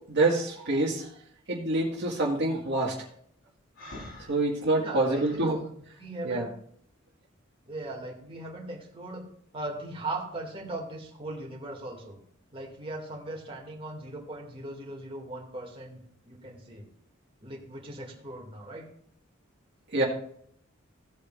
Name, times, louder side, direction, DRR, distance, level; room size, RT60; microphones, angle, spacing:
voice 1, 0.1-1.1 1.5-3.0 4.3-5.6 6.2-6.5 19.9-20.0, right 2 dB, 55° right, -2 dB, 1.7 m, -26 dB
Breathing, 3.8-5.5, left 1 dB, 70° left, 3.6 m, -45 dB
voice 2, 4.8-5.6 6.0-6.5 7.7-9.2 9.5-12.2 12.5-16.0 16.2-16.9 17.4-18.9, right 2 dB, 25° right, -1 dB, 2.1 m, -38 dB
16.0 x 8.3 x 2.4 m, 0.65 s
head